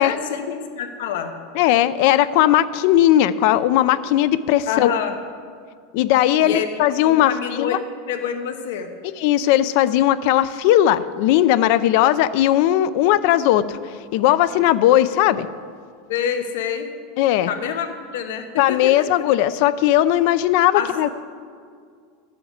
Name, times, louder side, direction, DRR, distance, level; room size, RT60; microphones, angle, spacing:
voice 1, 0.0-1.3 4.7-5.1 6.4-6.7 7.0-7.8 8.1-8.9 16.1-16.9 17.5-19.1 20.7-20.9, left 8 dB, 75° left, 6 dB, 1.0 m, -27 dB
voice 2, 1.6-4.9 5.9-7.8 9.2-15.5 17.2-17.5 18.6-21.1, left 13 dB, 50° left, 15 dB, 0.5 m, -18 dB
12.5 x 7.8 x 8.1 m, 2.1 s
supercardioid pair, 175°, 0 cm